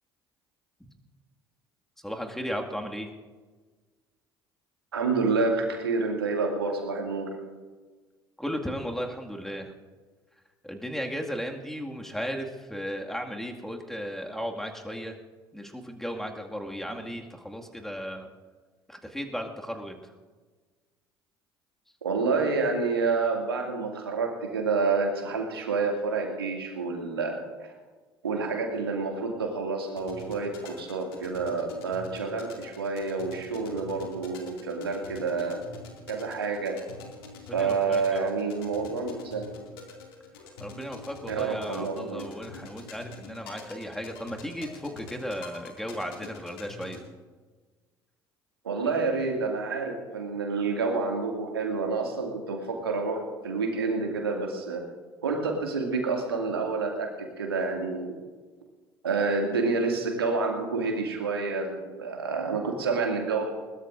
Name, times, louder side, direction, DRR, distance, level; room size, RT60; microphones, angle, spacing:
voice 1, 2.0-3.1 8.4-9.7 10.6-15.2 15.5-18.3 18.9-20.1 37.5-38.3 40.6-47.0, equal, 5° left, 2 dB, 2.1 m, -35 dB
voice 2, 4.9-7.4 22.0-27.7 28.2-35.6 36.1-36.8 37.5-39.5 41.3-42.3 48.6-54.8 55.2-58.1 59.0-63.5, right 4 dB, 80° right, 1 dB, 2.4 m, -28 dB
sound 1, 29.9-47.0, left 3 dB, 70° left, 2.4 m, -46 dB
21.5 x 19.5 x 2.6 m, 1.4 s
figure-of-eight pair, 55°, 12 cm